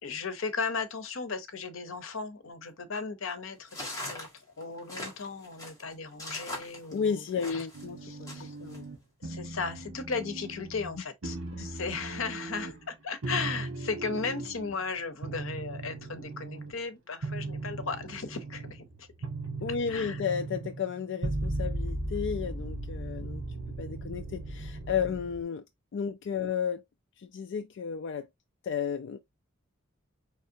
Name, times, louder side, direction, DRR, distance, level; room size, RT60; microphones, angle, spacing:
voice 1, 0.0-4.3 4.6-7.7 8.0-8.5 9.2-19.1 19.9-20.3, left 4 dB, 80° left, 0.8 m, -36 dB
sound 1, 3.7-7.8 8.3-8.8, left 1 dB, 15° left, 1.8 m, -40 dB
voice 2, 6.9-8.3 8.6-8.9 11.6-11.7 19.6-23.4 23.8-25.6 25.9-26.8 27.2-28.3 28.6-29.2, left 7 dB, 60° left, 0.3 m, -33 dB
sound 2, 7.7-9.0 9.2-11.0 11.2-12.9 13.2-14.8 15.2-16.8 17.2-25.4, right 2 dB, 85° right, 1.2 m, -37 dB
4.7 x 3.2 x 2.7 m
head